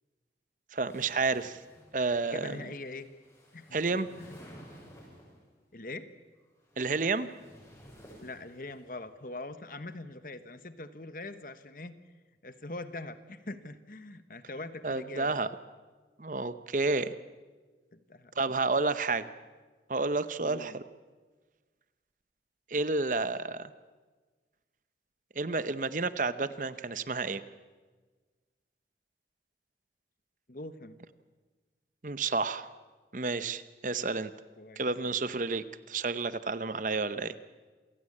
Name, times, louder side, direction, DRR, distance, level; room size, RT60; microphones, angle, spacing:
voice 1, 0.7-1.6 1.9-2.6 3.7-4.1 6.8-7.3 14.8-15.5 16.2-17.1 18.4-19.3 19.9-20.8 22.7-23.7 25.4-27.4 32.0-32.7 33.1-34.3 34.8-37.3, right 3 dB, 45° right, 13 dB, 0.8 m, -30 dB
sound 1, 0.8-5.4 6.4-8.9, equal, 20° left, 6.4 m, -54 dB
voice 2, 2.3-3.1 3.5-4.4 5.7-6.1 8.2-11.9 12.4-15.4 17.9-18.6 20.4-20.8 30.5-31.0 34.6-34.9, left 2 dB, 50° left, 11 dB, 1.2 m, -43 dB
27.5 x 16.5 x 8.7 m, 1.4 s
head